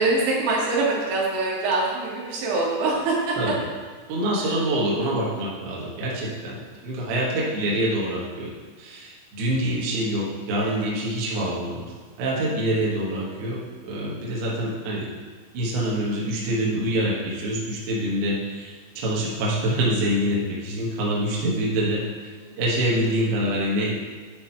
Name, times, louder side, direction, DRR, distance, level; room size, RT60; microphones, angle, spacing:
voice 1, 0.0-3.4 4.4-4.5 7.1-7.2 10.6-10.9 22.4-22.5, right 3 dB, 90° right, -4 dB, 3.9 m, -24 dB
voice 2, 4.1-6.6 6.8-8.5 8.8-11.9 12.2-15.1 15.5-24.0, right 1 dB, 70° right, -4 dB, 3.1 m, -26 dB
8.5 x 5.0 x 4.4 m, 1.5 s
omnidirectional pair, 5.1 m